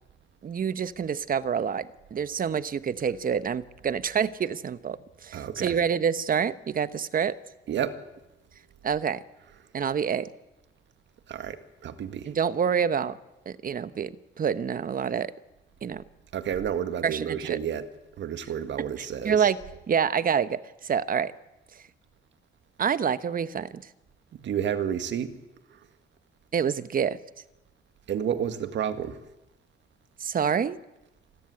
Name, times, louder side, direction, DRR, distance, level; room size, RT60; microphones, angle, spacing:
voice 1, 0.4-7.4 8.8-9.2 9.7-10.3 12.3-13.2 13.5-15.3 15.8-16.0 17.0-17.6 18.9-19.6 19.9-21.3 22.8-23.8 26.5-27.2 30.2-30.8, right 7 dB, 45° right, 1.1 m, -27 dB
voice 2, 5.3-5.8 7.7-8.0 11.3-12.3 16.3-17.9 18.2-19.5 24.4-25.3 28.1-29.2, right 9 dB, 65° right, 1.9 m, -30 dB
25.5 x 14.5 x 9.8 m
cardioid pair, 90°, 20 cm